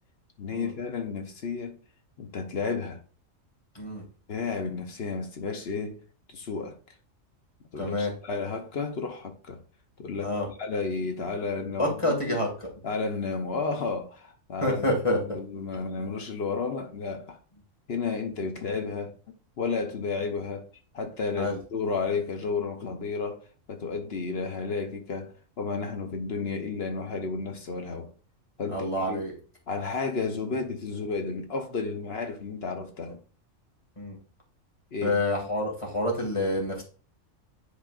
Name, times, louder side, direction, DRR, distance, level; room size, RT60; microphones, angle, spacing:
voice 1, 0.4-1.8 2.2-3.0 4.3-6.0 6.3-6.8 7.7-9.6 10.0-12.0 12.3-12.4 12.8-17.4 17.9-19.1 19.6-20.7 20.9-28.1 28.6-29.3 29.7-33.2 34.9-35.2, left 4 dB, 55° left, 1.0 m, -32 dB
voice 2, 7.8-8.1 10.2-10.5 11.8-12.5 14.6-15.2 21.4-21.6 28.7-29.3 34.0-34.2 35.0-36.8, left 1 dB, 25° left, 2.0 m, -27 dB
10.5 x 4.0 x 2.5 m
omnidirectional pair, 1.4 m